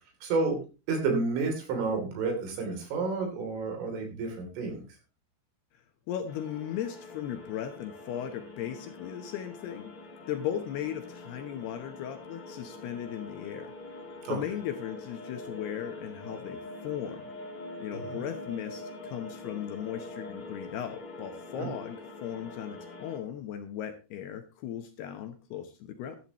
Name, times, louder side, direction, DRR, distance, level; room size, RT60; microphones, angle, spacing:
voice 1, 0.2-0.6 0.9-4.8 14.3-14.4 18.1-18.2 21.6-21.7, right 4 dB, 80° right, 3 dB, 5.7 m, -30 dB
voice 2, 6.1-9.9 10.3-13.7 14.3-17.3 17.8-26.2, left 10 dB, 75° left, 7 dB, 2.6 m, -37 dB
sound 1, 6.3-23.2, left 2 dB, 45° left, 4.8 m, -44 dB
12.5 x 12.5 x 3.0 m, 0.32 s
omnidirectional pair, 5.5 m